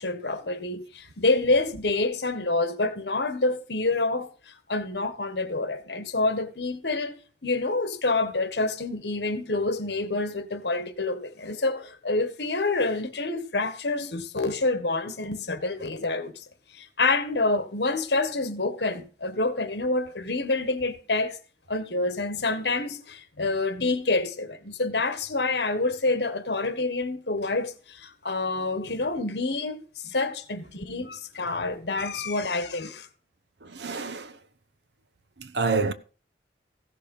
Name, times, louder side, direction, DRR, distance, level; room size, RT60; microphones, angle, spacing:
voice 1, 0.0-4.3 4.7-16.4 16.7-21.4 21.7-33.1, left 3 dB, 70° left, 1.6 m, -27 dB
voice 2, 33.6-34.4 35.4-35.9, right 4 dB, 75° right, 1.0 m, -28 dB
15.5 x 6.8 x 5.5 m
head